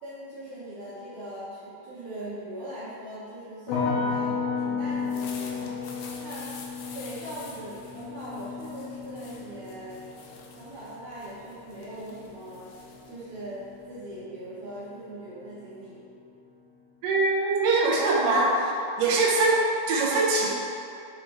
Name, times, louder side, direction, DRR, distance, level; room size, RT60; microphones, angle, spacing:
voice 1, 0.0-6.5 6.9-10.1 10.6-12.7 13.1-16.0, right 1 dB, 65° right, -10 dB, 2.0 m, -40 dB
sound 1, 3.7-14.8 15.0-15.8, left 5 dB, 70° left, 2.5 m, -34 dB
sound 2, 4.9-14.2, left 5 dB, 90° left, 2.0 m, -48 dB
voice 2, 17.0-18.7 19.0-20.5, right 2 dB, 85° right, -4 dB, 1.8 m, -23 dB
6.6 x 5.4 x 3.0 m, 2.5 s
omnidirectional pair, 4.8 m